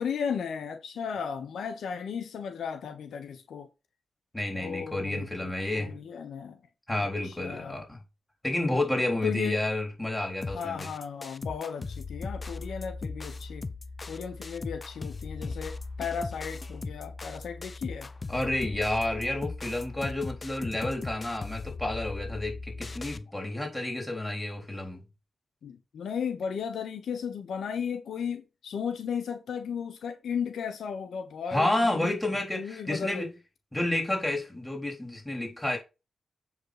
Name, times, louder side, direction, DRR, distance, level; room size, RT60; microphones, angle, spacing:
voice 1, 0.0-3.7 4.5-6.6 7.0-7.8 9.2-9.6 10.5-13.6 14.1-18.1 25.6-32.1 32.5-33.3, left 7 dB, 85° left, 1.2 m, -35 dB
voice 2, 4.3-6.0 6.9-8.0 8.4-10.9 18.3-25.0 31.5-33.3 33.7-35.8, left 1 dB, 10° left, 3.7 m, -30 dB
sound 1, 10.4-23.2, left 3 dB, 35° left, 0.7 m, -38 dB
8.0 x 5.3 x 5.0 m
cardioid pair, 85°, 0 cm